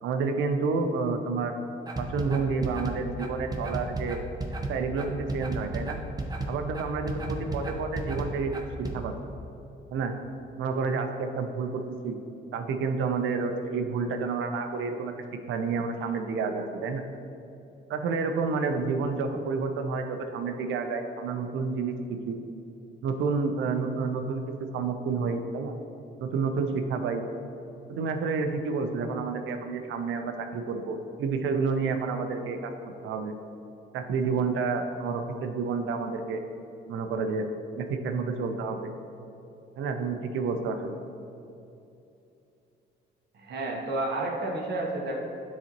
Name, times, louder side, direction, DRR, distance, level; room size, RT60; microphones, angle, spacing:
voice 1, 0.0-1.6 2.0-4.2 4.7-6.0 6.5-8.6 8.9-9.1 9.9-10.1 10.6-12.1 12.5-15.1 15.5-17.0 17.9-22.4 23.0-25.7 26.2-27.2 27.9-32.7 33.0-33.3 33.9-36.4 36.9-37.5 37.7-38.9 39.8-41.0, right 4 dB, 80° right, 6 dB, 0.6 m, -29 dB
sound 1, 1.9-9.0, right 2 dB, 20° right, 0.7 m, -33 dB
voice 2, 43.3-45.2, right 2 dB, 55° right, -1 dB, 1.0 m, -31 dB
9.6 x 4.1 x 3.0 m, 2.8 s
cardioid pair, 90°, 20 cm